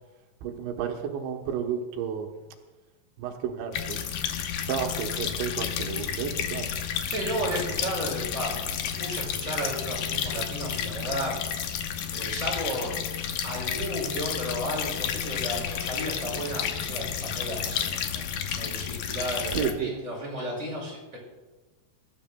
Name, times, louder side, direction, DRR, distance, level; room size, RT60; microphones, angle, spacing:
voice 1, 0.4-2.3 3.2-4.0 4.7-6.7 19.5-19.9, right 8 dB, 90° right, 3 dB, 3.4 m, -31 dB
sound 1, 3.7-19.7, left 8 dB, 80° left, 1.9 m, -31 dB
voice 2, 7.0-11.8 12.1-13.0 13.4-18.3 18.5-21.2, equal, 20° right, -4 dB, 5.8 m, -34 dB
25.0 x 13.0 x 2.2 m, 1.2 s
omnidirectional pair, 5.0 m